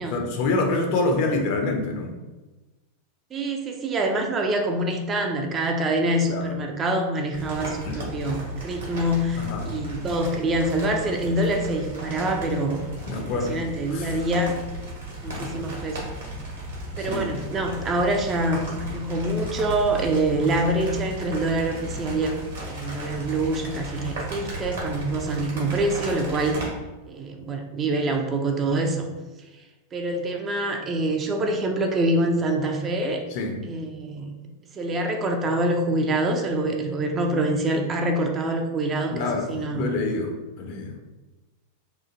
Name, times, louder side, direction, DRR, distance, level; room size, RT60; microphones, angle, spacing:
voice 1, 0.0-2.1 6.3-6.5 7.9-8.0 9.4-9.7 13.1-13.6 13.9-14.2 15.3-15.6 17.0-17.3 33.3-33.6 39.1-40.9, left 3 dB, 45° left, 2 dB, 0.5 m, -27 dB
voice 2, 3.3-12.8 13.2-14.6 15.2-16.1 17.0-26.7 27.1-29.1 29.9-33.2 33.6-34.3 34.7-39.9, right 1 dB, 25° right, 3 dB, 0.3 m, -25 dB
sound 1, 7.3-26.7, right 1 dB, 65° right, 1.0 m, -35 dB
3.0 x 2.2 x 2.5 m, 1.1 s
figure-of-eight pair, 90°, 0 cm